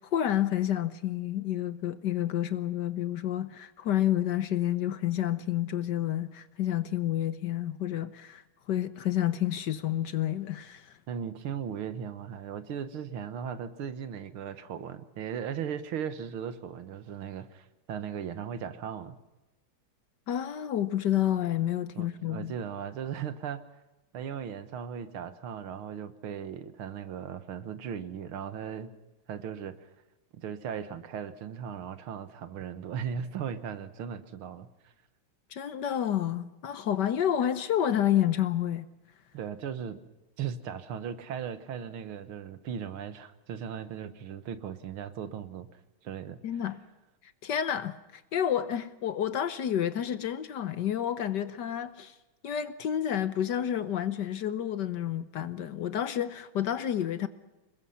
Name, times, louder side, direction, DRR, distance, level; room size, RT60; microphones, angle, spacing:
voice 1, 0.0-8.4 8.7-11.0 20.3-22.5 35.5-38.8 46.4-46.8 47.4-52.1 52.4-57.3, left 11 dB, 60° left, 1.3 m, -29 dB
voice 2, 11.1-19.1 22.0-23.6 24.1-28.9 29.3-29.9 30.3-34.9 39.3-40.0 40.4-46.4, right 8 dB, 75° right, 2.1 m, -37 dB
26.0 x 21.0 x 5.7 m
omnidirectional pair, 2.3 m